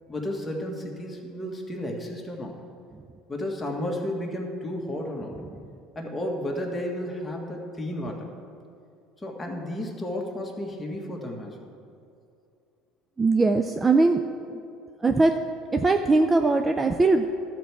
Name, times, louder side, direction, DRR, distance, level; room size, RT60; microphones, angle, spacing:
voice 1, 0.1-2.6 3.3-5.4 6.0-8.3 9.2-11.8, left 1 dB, 15° left, -1 dB, 1.8 m, -32 dB
voice 2, 13.2-14.2 14.5-14.6 15.0-15.4 15.7-17.2, right 3 dB, 20° right, 6 dB, 0.4 m, -20 dB
12.5 x 4.6 x 7.3 m, 2.5 s
supercardioid pair, 95°, 0 cm